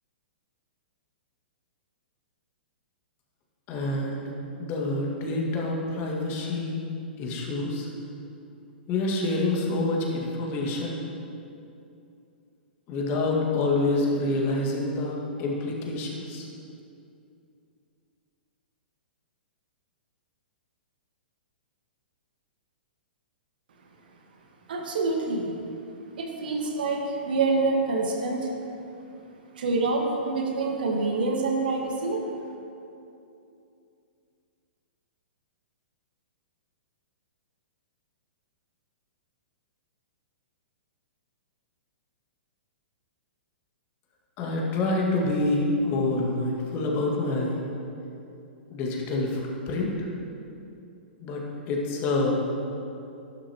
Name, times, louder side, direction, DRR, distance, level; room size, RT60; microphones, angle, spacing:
voice 1, 3.7-4.3 4.6-6.8 7.2-7.9 8.9-11.0 12.9-16.4 44.4-47.6 48.7-50.1 51.2-52.3, left 2 dB, 30° left, -2 dB, 2.1 m, -27 dB
voice 2, 24.7-25.6 26.2-28.5 29.6-32.2, right 3 dB, 60° right, 1 dB, 1.7 m, -26 dB
13.5 x 12.0 x 3.1 m, 2.6 s
figure-of-eight pair, 110°, 6 cm